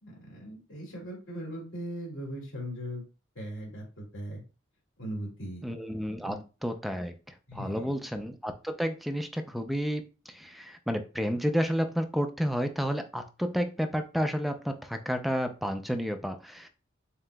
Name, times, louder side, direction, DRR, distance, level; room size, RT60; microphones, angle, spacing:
voice 1, 0.0-3.0 3.3-4.4 5.0-5.7 6.2-6.4 7.5-8.0, equal, 75° left, -2 dB, 2.4 m, -39 dB
voice 2, 5.6-7.1 7.5-16.7, equal, ahead, 6 dB, 0.4 m, -31 dB
7.3 x 2.8 x 2.2 m, 0.32 s
head